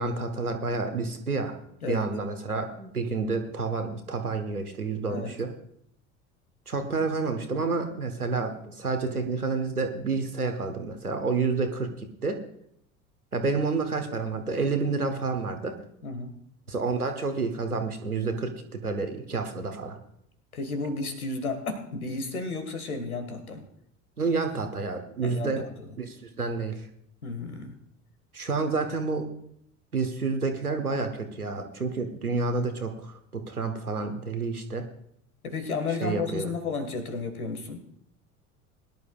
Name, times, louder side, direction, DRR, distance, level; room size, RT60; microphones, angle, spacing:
voice 1, 0.0-1.5 1.9-5.5 6.7-12.4 13.3-15.7 16.7-20.0 24.2-25.6 26.0-26.8 28.3-29.3 29.9-34.8 36.0-36.5, right 4 dB, 85° right, 5 dB, 1.3 m, -29 dB
voice 2, 16.0-16.3 20.5-23.7 25.2-25.9 27.2-27.8 35.4-37.8, left 4 dB, 75° left, 8 dB, 1.7 m, -33 dB
21.0 x 11.0 x 2.4 m, 0.70 s
figure-of-eight pair, 70°, 43 cm